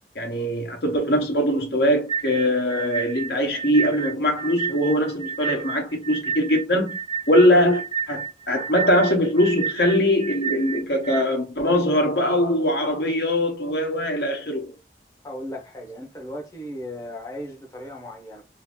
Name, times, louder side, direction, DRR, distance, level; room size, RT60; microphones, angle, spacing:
voice 1, 0.1-7.0 7.3-14.7, equal, 65° left, 1.0 m, -21 dB
sound 1, 2.1-11.2, right 6 dB, 30° right, 0.6 m, -31 dB
voice 2, 15.2-18.4, equal, 20° left, 0.7 m, -36 dB
2.9 x 2.5 x 3.5 m
head